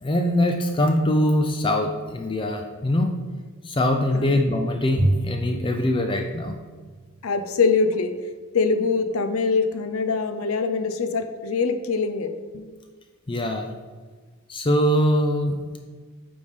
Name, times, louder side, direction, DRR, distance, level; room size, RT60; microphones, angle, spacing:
voice 1, 0.0-3.1 3.6-6.5 13.3-13.7 14.5-15.8, left 1 dB, 25° left, 4 dB, 0.4 m, -22 dB
Bowed string instrument, 5.0-7.4, right 2 dB, 35° right, 0.5 m, -29 dB
voice 2, 7.2-8.1 8.5-12.7, left 4 dB, 75° left, 9 dB, 0.6 m, -23 dB
9.2 x 3.5 x 5.1 m, 1.5 s
head